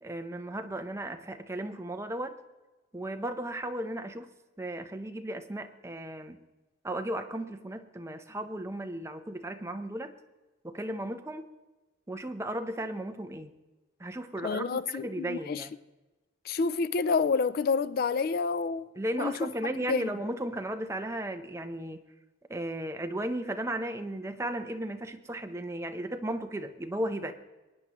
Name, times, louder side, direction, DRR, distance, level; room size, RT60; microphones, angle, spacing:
voice 1, 0.0-2.4 2.9-4.3 4.6-6.4 6.8-10.1 10.6-11.5 12.1-13.5 14.0-15.8 19.0-22.0 22.5-27.3, right 1 dB, 15° right, 0.7 m, -35 dB
voice 2, 14.4-15.7 16.4-18.9 19.2-19.5 19.9-20.1, left 5 dB, 50° left, 0.3 m, -28 dB
23.0 x 9.8 x 3.0 m
head